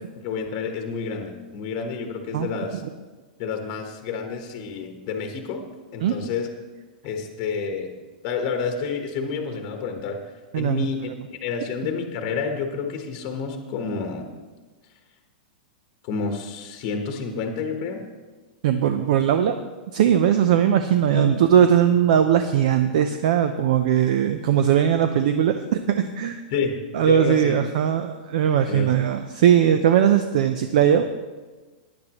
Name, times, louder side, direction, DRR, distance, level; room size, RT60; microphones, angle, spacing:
voice 1, 0.2-2.8 3.4-5.7 5.9-6.5 7.0-7.9 8.2-10.2 10.5-11.1 11.4-14.3 16.0-18.0 21.1-21.3 26.5-26.7 27.1-27.6 28.7-29.0, left 5 dB, 30° left, 4 dB, 1.2 m, -29 dB
voice 2, 10.5-10.9 18.6-19.5 19.9-26.4 26.9-31.2, right 9 dB, 45° right, 8 dB, 0.6 m, -19 dB
16.0 x 10.5 x 3.0 m, 1.3 s
supercardioid pair, 175°, 5 cm